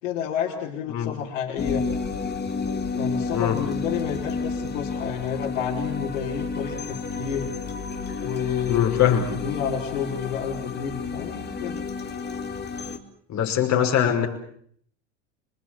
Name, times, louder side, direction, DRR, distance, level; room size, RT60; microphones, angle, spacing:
voice 1, 0.0-1.9 2.9-7.5 8.2-11.8, left 8 dB, 80° left, -2 dB, 5.0 m, -30 dB
sound 1, 1.6-13.0, left 4 dB, 25° left, 2.8 m, -31 dB
voice 2, 8.7-9.4 13.3-14.3, left 9 dB, 50° left, 4 dB, 5.5 m, -22 dB
26.0 x 23.5 x 7.5 m, 0.63 s
supercardioid pair, 100°, 37 cm